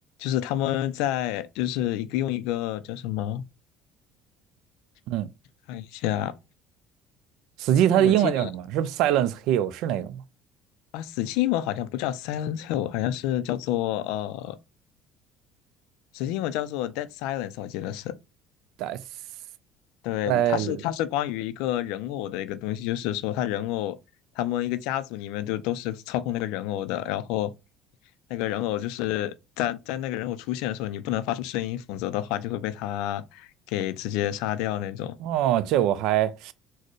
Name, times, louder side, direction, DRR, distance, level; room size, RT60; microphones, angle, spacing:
voice 1, 0.2-3.4 5.7-6.3 8.0-8.5 10.9-14.6 16.1-18.1 20.0-24.0 24.4-27.5 28.3-35.2, left 13 dB, 75° left, 0.3 m, -29 dB
voice 2, 7.6-10.2 18.8-19.0 20.3-20.8 35.2-36.5, right 11 dB, 70° right, 0.3 m, -23 dB
4.1 x 2.0 x 3.0 m
hypercardioid pair, 75°, 0 cm